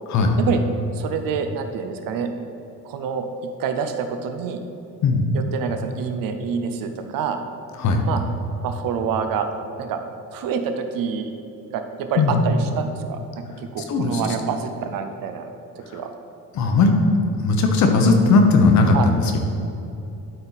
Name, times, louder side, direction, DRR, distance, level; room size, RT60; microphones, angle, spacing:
voice 1, 0.9-2.3 2.8-4.6 5.3-7.5 8.0-8.2 8.6-9.5 9.8-10.0 10.3-11.3 11.7-15.5 15.7-16.1 18.9-19.1, right 6 dB, 65° right, 7 dB, 0.7 m, -27 dB
voice 2, 13.9-14.2 15.9-16.0 16.5-16.9 17.3-19.4, left 3 dB, 50° left, 4 dB, 0.9 m, -17 dB
12.0 x 4.5 x 4.1 m, 2.7 s
cardioid pair, 180°, 37 cm